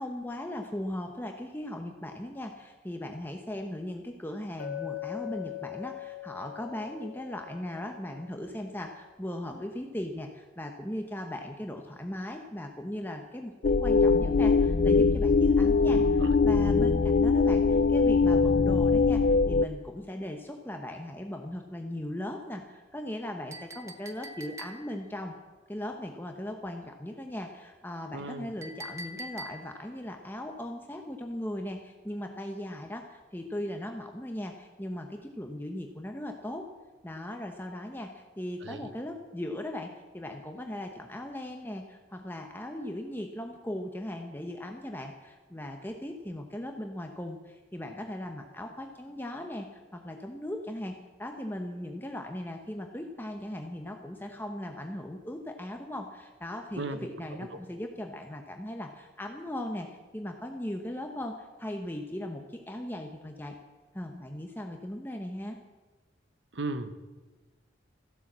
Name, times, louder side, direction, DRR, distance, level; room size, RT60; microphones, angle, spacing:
voice 1, 0.0-25.4 25.7-36.7 37.0-59.9 60.1-63.6 63.9-65.6, left 1 dB, 10° left, 3 dB, 1.0 m, -38 dB
Chink clink, 4.6-8.6, left 14 dB, 80° left, 1.4 m, -41 dB
sound 1, 13.6-19.7, left 4 dB, 50° left, 0.5 m, -22 dB
voice 2, 15.9-16.4 28.1-28.5 38.6-38.9 56.8-57.1 66.5-66.9, right 2 dB, 80° right, 10 dB, 1.1 m, -36 dB
Chink clink 2, 23.5-25.1 28.6-29.9, right 1 dB, 15° right, 1.0 m, -43 dB
15.0 x 11.5 x 7.4 m, 1.2 s
head